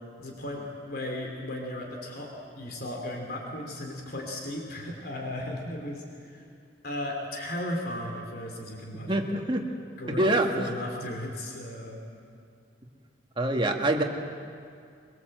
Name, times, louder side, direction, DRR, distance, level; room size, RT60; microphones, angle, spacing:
voice 1, 0.2-6.5 6.8-9.4 10.0-12.0, left 1 dB, 55° left, 1 dB, 3.4 m, -36 dB
voice 2, 9.1-9.7 10.1-10.7 13.4-14.0, right 1 dB, 25° right, 2 dB, 1.9 m, -25 dB
23.0 x 22.5 x 8.0 m, 2.4 s
head